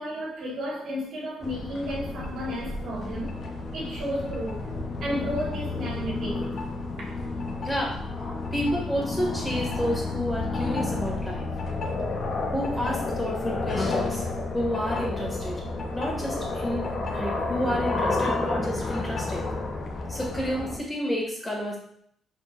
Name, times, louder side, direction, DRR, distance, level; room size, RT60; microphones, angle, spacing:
voice 1, 0.0-3.4 3.7-4.6 5.0-6.4 7.0-7.1, equal, 75° right, 1.6 m, -32 dB
sound 1, 1.4-20.8, left 3 dB, 45° left, 0.8 m, -31 dB
voice 2, 7.6-8.0 8.5-11.5 12.5-14.3 14.5-15.6 15.9-19.4 20.1-21.8, equal, 15° left, 1.9 m, -30 dB
5.2 x 3.8 x 2.5 m
cardioid pair, 90°, 0 cm